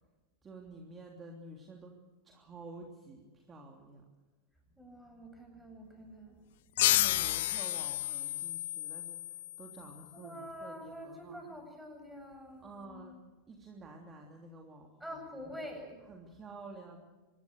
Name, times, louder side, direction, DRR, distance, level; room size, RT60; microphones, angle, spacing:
voice 1, 0.4-2.0 2.2-4.0 6.8-11.6 12.6-13.2 13.5-15.2 15.4-15.5 16.1-17.0, right 3 dB, 20° right, 1 dB, 3.1 m, -50 dB
voice 2, 4.8-6.4 10.1-13.1 15.0-16.1, equal, ahead, 3 dB, 7.8 m, -46 dB
sound 1, 6.8-10.0, left 15 dB, 55° left, 0.8 m, -31 dB
26.0 x 21.0 x 6.6 m, 1.2 s
figure-of-eight pair, 90°, 0 cm